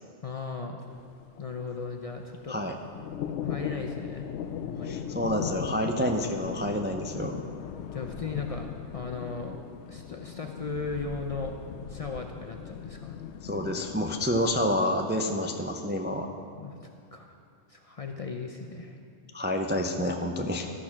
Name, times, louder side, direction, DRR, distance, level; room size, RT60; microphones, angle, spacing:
voice 1, 0.2-0.8 1.4-2.6 3.3-4.3 4.7-5.0 7.9-9.6 9.9-11.6 11.9-13.2 16.5-16.8 17.1-17.3 17.7-19.0, left 4 dB, 45° left, 3 dB, 0.5 m, -37 dB
sound 1, 0.9-14.7, left 8 dB, 80° left, 0.9 m, -39 dB
voice 2, 4.8-7.4 13.4-16.3 19.3-20.7, left 1 dB, 15° right, 3 dB, 0.3 m, -28 dB
12.5 x 6.5 x 5.9 m, 2.3 s
omnidirectional pair, 1.2 m